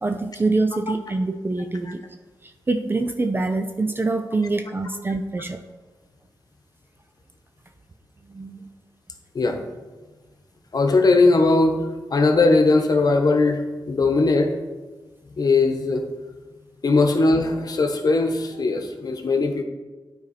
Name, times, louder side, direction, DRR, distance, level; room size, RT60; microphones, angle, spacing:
voice 1, 0.0-2.0 2.4-5.6 8.3-8.7, right 3 dB, 25° right, 7 dB, 0.5 m, -25 dB
voice 2, 10.7-11.8 12.1-14.5 15.4-16.1 16.8-19.6, left 3 dB, 50° left, 5 dB, 1.0 m, -19 dB
9.5 x 4.3 x 4.2 m, 1.3 s
supercardioid pair, 50°, 8 cm